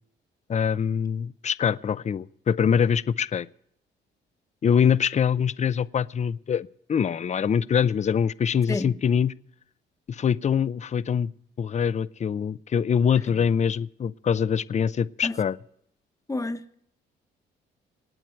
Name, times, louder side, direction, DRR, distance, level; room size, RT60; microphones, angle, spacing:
voice 1, 0.5-3.5 4.6-9.3 10.1-11.3 11.6-15.6, left 7 dB, 35° left, 0.6 m, -24 dB
voice 2, 16.3-16.8, left 2 dB, 15° left, 1.1 m, -29 dB
26.5 x 9.0 x 4.5 m
cardioid pair, 90°, 20 cm